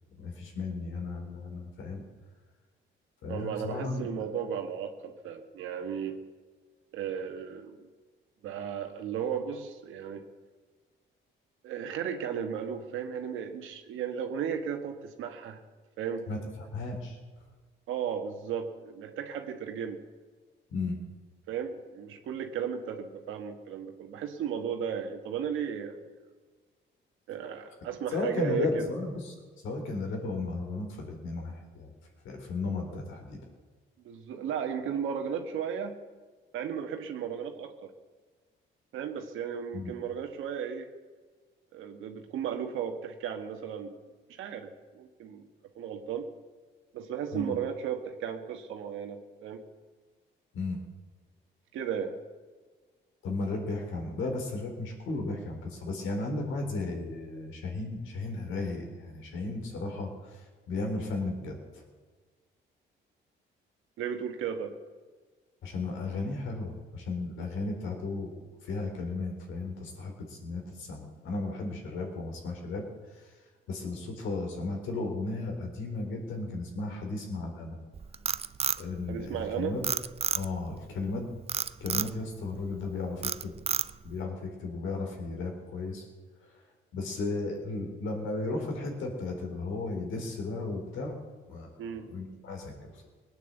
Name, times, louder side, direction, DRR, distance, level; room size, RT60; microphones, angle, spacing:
voice 1, 0.1-2.0 3.2-4.1 16.3-16.4 16.7-17.2 20.7-21.0 28.1-29.3 29.6-31.9 32.2-33.4 39.7-39.9 47.3-47.6 50.5-50.8 53.2-60.4 60.7-61.8 65.6-72.8 73.7-77.8 78.8-80.0 80.3-81.3 81.8-83.5 84.0-86.1 86.9-91.1 91.5-93.1, left 3 dB, 80° left, 2 dB, 4.0 m, -35 dB
voice 2, 3.3-6.2 6.9-7.9 8.4-10.3 11.6-15.6 16.0-16.3 17.9-20.0 21.5-26.0 27.3-28.9 34.0-35.9 36.5-37.9 38.9-40.9 41.7-43.9 44.4-45.5 45.7-46.3 46.9-49.6 51.7-52.2 64.0-64.7 79.1-79.7 91.8-92.1, right 8 dB, 85° right, 4 dB, 1.6 m, -35 dB
Frog, 77.9-79.5 79.8-80.7 81.5-82.1 82.6-82.9 83.2-84.1, right 6 dB, 30° right, 0.5 m, -30 dB
19.5 x 9.2 x 7.8 m, 1.4 s
cardioid pair, 90°, 20 cm